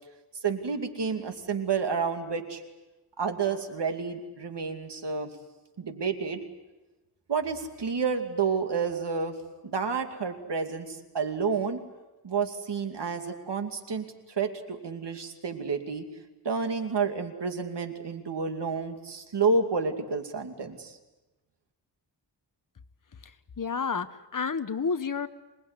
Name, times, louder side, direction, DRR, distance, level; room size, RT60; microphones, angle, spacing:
voice 1, 0.4-2.6 3.2-5.3 5.8-6.4 7.3-9.4 9.6-11.8 12.2-16.1 16.4-21.0, right 5 dB, 80° right, 5 dB, 2.6 m, -30 dB
voice 2, 23.1-25.3, left 5 dB, 50° left, 11 dB, 1.3 m, -31 dB
26.0 x 20.5 x 9.6 m, 1.1 s
wide cardioid pair, 115°, 41 cm